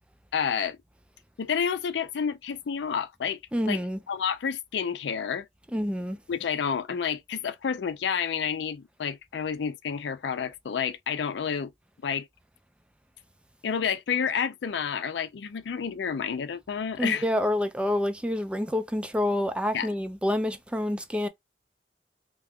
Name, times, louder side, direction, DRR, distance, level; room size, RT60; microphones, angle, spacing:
voice 1, 0.3-0.8 1.4-3.4 3.7-3.8 4.1-5.5 6.3-11.7 12.0-12.3 13.6-17.2 19.7-19.9, left 7 dB, 75° left, 0.4 m, -29 dB
voice 2, 3.5-4.0 5.7-6.2 17.0-21.3, left 1 dB, 5° right, 0.4 m, -27 dB
2.9 x 2.2 x 3.5 m
head